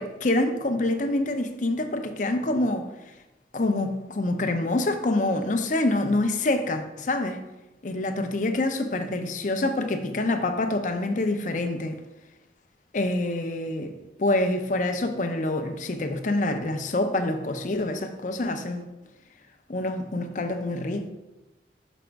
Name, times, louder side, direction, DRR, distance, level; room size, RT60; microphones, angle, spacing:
voice 1, 0.0-2.9 3.5-7.4 7.8-12.0 12.9-18.9 19.7-21.1, left 2 dB, 45° left, 0.5 m, -26 dB
6.1 x 5.0 x 3.4 m
head